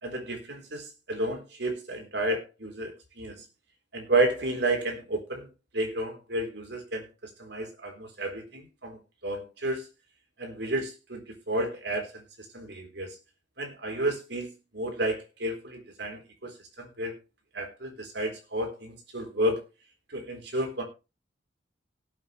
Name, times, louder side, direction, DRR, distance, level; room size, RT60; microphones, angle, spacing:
voice 1, 0.0-3.4 3.9-5.5 5.7-9.9 10.4-12.2 12.5-13.2 13.6-17.1 17.5-19.6 20.1-20.8, right 1 dB, 70° right, 4 dB, 3.8 m, -31 dB
18.0 x 8.4 x 3.2 m, 0.28 s
head